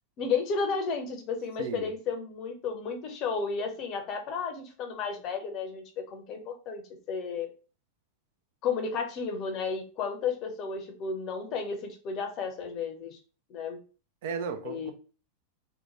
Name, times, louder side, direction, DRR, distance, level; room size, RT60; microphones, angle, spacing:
voice 1, 0.2-6.8 7.1-7.5 8.6-13.2 13.5-13.8 14.6-14.9, left 5 dB, 35° left, 0.6 m, -33 dB
voice 2, 1.6-1.9 14.2-14.9, right 6 dB, 50° right, 0.4 m, -35 dB
2.9 x 2.2 x 2.9 m
figure-of-eight pair, 90°, 0 cm